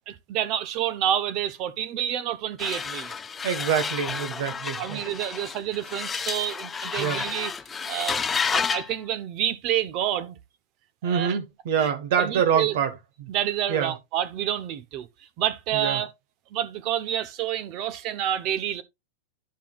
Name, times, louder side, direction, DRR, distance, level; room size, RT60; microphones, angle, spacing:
voice 1, 0.1-3.1 4.8-7.5 7.9-8.2 8.5-10.4 11.0-11.4 11.8-11.9 12.2-12.8 13.3-15.1 15.4-16.1 16.5-18.8, right 11 dB, 40° right, 0.8 m, -28 dB
sound 1, 2.6-8.9, left 6 dB, 15° left, 0.5 m, -30 dB
voice 2, 3.4-5.0 7.0-7.2 11.0-12.9 13.2-13.3 13.7-13.9 15.7-16.0, right 8 dB, 65° right, 1.4 m, -25 dB
10.5 x 5.7 x 2.4 m
supercardioid pair, 140°, 0 cm